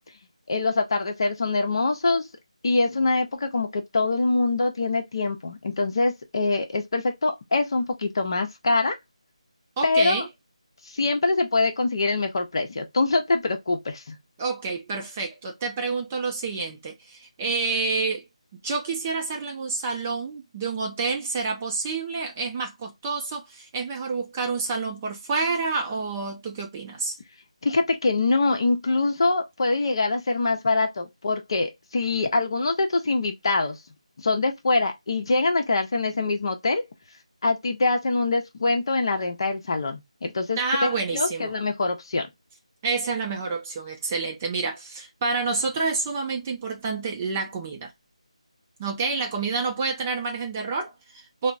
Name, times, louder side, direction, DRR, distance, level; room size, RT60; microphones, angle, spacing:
voice 1, 0.5-2.3 2.6-9.0 9.8-10.3 10.9-14.2 27.6-33.8 34.2-36.8 37.4-40.6 41.1-42.3, left 3 dB, 45° left, 0.8 m, -24 dB
voice 2, 9.8-10.3 14.4-18.2 18.5-27.2 40.6-41.5 42.8-47.9 48.8-51.5, right 4 dB, 20° right, 0.5 m, -28 dB
4.2 x 2.1 x 2.5 m
figure-of-eight pair, 165°, 4 cm